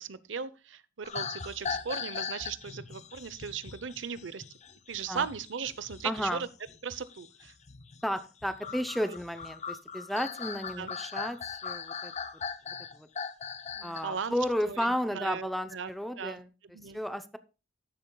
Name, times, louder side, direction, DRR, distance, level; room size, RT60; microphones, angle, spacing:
voice 1, 0.0-4.4 4.9-6.5 6.8-7.5 9.1-9.2 10.8-10.9 13.8-14.4 14.6-15.9 16.2-16.4 16.7-17.0, right 6 dB, 75° right, 15 dB, 0.7 m, -37 dB
sound 1, 1.0-14.0 14.4-14.7, left 6 dB, 40° left, 0.7 m, -40 dB
voice 2, 6.0-6.4 8.0-12.1 12.9-13.1 13.8-16.5 16.9-17.4, equal, ahead, 11 dB, 0.6 m, -33 dB
13.0 x 10.5 x 2.3 m, 0.31 s
head